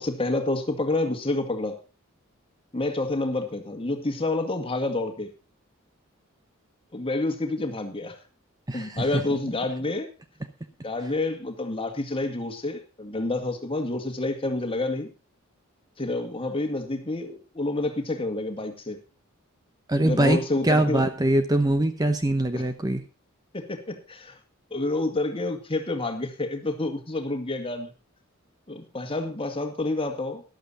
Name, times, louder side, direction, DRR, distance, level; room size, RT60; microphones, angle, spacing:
voice 1, 0.0-1.8 2.7-5.3 6.9-8.2 8.7-10.1 10.8-15.1 16.0-19.0 20.0-21.0 22.5-22.6 23.5-24.4 24.7-27.9 28.7-30.4, left 2 dB, 25° left, 5 dB, 2.0 m, -28 dB
voice 2, 8.7-9.3 11.0-11.1 19.9-23.0, right 1 dB, 20° right, 8 dB, 0.9 m, -23 dB
13.5 x 12.0 x 4.1 m, 0.31 s
head